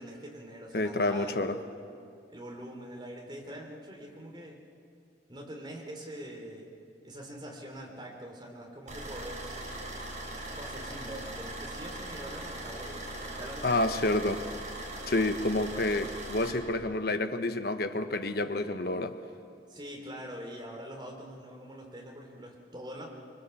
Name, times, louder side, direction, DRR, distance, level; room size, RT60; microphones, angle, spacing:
voice 1, 0.0-1.8 2.3-4.6 5.3-6.7 7.0-9.7 10.5-14.3 19.7-23.1, equal, 25° right, 0 dB, 3.6 m, -44 dB
voice 2, 0.7-1.6 13.6-14.4 15.1-19.1, left 2 dB, 60° left, 8 dB, 1.1 m, -29 dB
sound 1, 8.9-16.5, right 1 dB, 45° right, 5.6 m, -40 dB
24.0 x 23.5 x 7.2 m, 2.4 s
head